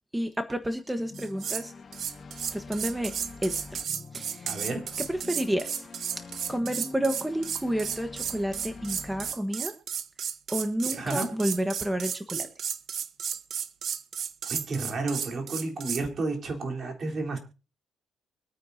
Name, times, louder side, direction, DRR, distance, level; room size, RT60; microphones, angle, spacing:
voice 1, 0.1-1.7 2.5-3.8 4.1-4.6 5.0-5.9 6.2-9.8 10.5-12.5, right 1 dB, 10° right, 8 dB, 1.4 m, -30 dB
sound 1, 1.1-9.3, left 4 dB, 45° left, 1.7 m, -45 dB
sound 2, 1.1-1.7 1.9-16.0, right 8 dB, 60° right, 1.0 m, -33 dB
voice 2, 4.5-4.9 11.0-11.3 14.5-17.4, right 3 dB, 45° right, 2 dB, 3.9 m, -31 dB
24.5 x 9.2 x 2.8 m, 0.32 s
cardioid pair, 90°, 0 cm